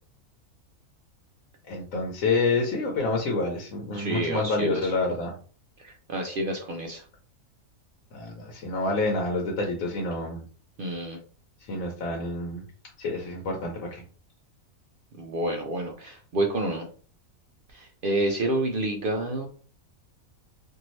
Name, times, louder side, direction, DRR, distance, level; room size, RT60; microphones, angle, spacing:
voice 1, 1.7-5.3 8.1-10.4 11.7-12.6 13.0-14.0, left 3 dB, 70° left, 0 dB, 1.1 m, -28 dB
voice 2, 3.9-4.9 5.8-7.0 10.8-11.2 15.2-16.9 17.7-19.4, right 1 dB, 65° right, 2 dB, 0.5 m, -29 dB
2.7 x 2.6 x 3.0 m, 0.40 s
omnidirectional pair, 1.5 m